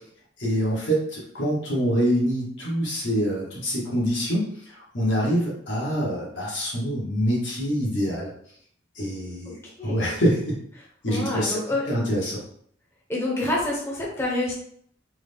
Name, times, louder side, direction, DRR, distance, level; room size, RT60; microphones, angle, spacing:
voice 1, 0.4-8.3 8.9-9.6 9.8-10.5 11.0-11.6 11.9-12.4, equal, 80° left, -4 dB, 1.3 m, -25 dB
voice 2, 9.5-10.0 11.1-12.0 13.1-14.5, left 1 dB, 15° left, -4 dB, 0.6 m, -28 dB
3.6 x 2.2 x 3.4 m, 0.63 s
head